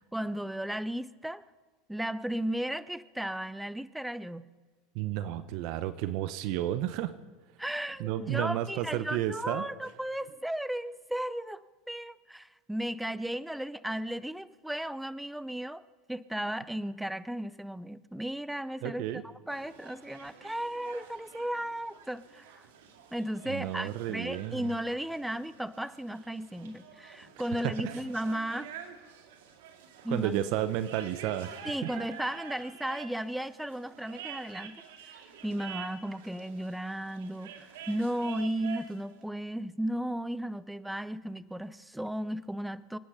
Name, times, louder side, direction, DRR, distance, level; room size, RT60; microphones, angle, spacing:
voice 1, 0.1-1.4 1.9-4.5 7.6-11.6 11.9-15.8 16.1-22.6 23.1-28.7 30.0-30.3 31.6-34.8 35.0-43.0, right 1 dB, 5° right, 17 dB, 0.6 m, -35 dB
voice 2, 4.9-7.1 8.0-9.6 18.8-19.2 23.5-24.7 27.6-27.9 30.1-31.7, right 12 dB, 60° right, 13 dB, 0.9 m, -32 dB
sound 1, 19.5-39.0, right 8 dB, 85° right, 2.1 m, -48 dB
25.0 x 10.0 x 5.6 m, 1.4 s
supercardioid pair, 130°, 0 cm